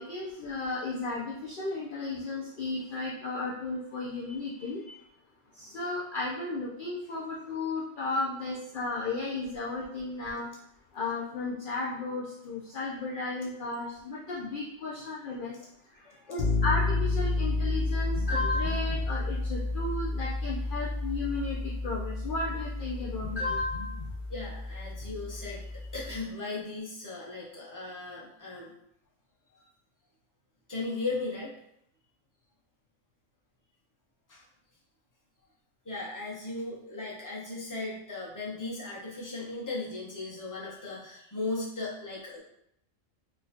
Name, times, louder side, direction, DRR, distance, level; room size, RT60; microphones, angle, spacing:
voice 1, 0.0-4.9 5.5-10.5 10.9-15.6 16.3-24.1, left 3 dB, 65° left, -4 dB, 0.5 m, -34 dB
voice 2, 15.9-16.3 24.3-28.7 30.7-31.5 34.3-34.4 35.8-42.4, left 3 dB, 20° left, -5 dB, 0.7 m, -37 dB
sound 1, 16.4-26.2, left 2 dB, 90° left, 1.1 m, -31 dB
4.1 x 2.2 x 2.7 m, 0.74 s
omnidirectional pair, 1.4 m